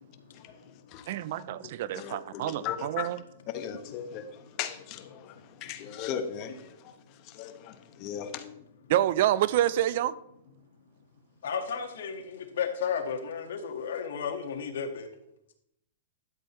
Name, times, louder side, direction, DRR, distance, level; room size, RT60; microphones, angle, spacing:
voice 1, 1.1-3.2 8.9-10.1, right 12 dB, 60° right, 0.5 m, -27 dB
voice 2, 1.9-3.1 3.5-4.3 4.6-6.9 7.2-8.4, left 9 dB, 40° left, 1.1 m, -37 dB
voice 3, 11.4-15.1, left 6 dB, 80° left, 1.7 m, -33 dB
13.0 x 7.6 x 3.2 m
hypercardioid pair, 135°, 0 cm